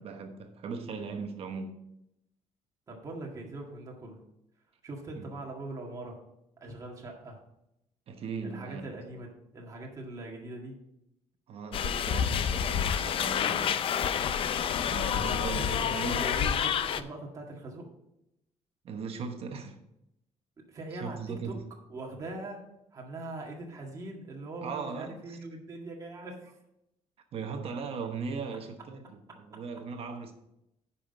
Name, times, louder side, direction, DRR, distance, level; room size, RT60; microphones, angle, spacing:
voice 1, 0.0-1.8 5.1-5.3 8.1-9.0 11.5-13.9 14.8-16.3 18.8-19.8 20.9-21.7 24.6-25.4 27.3-30.3, right 5 dB, 50° right, 1.1 m, -38 dB
voice 2, 2.9-4.2 4.8-6.2 6.6-7.4 8.4-9.3 9.5-10.8 15.1-17.9 20.6-21.6 21.9-22.6 22.9-26.6, right 2 dB, 25° right, 1.8 m, -41 dB
sound 1, 11.7-17.0, left 8 dB, 45° left, 0.5 m, -28 dB
10.0 x 5.7 x 5.3 m
cardioid pair, 155°, 12 cm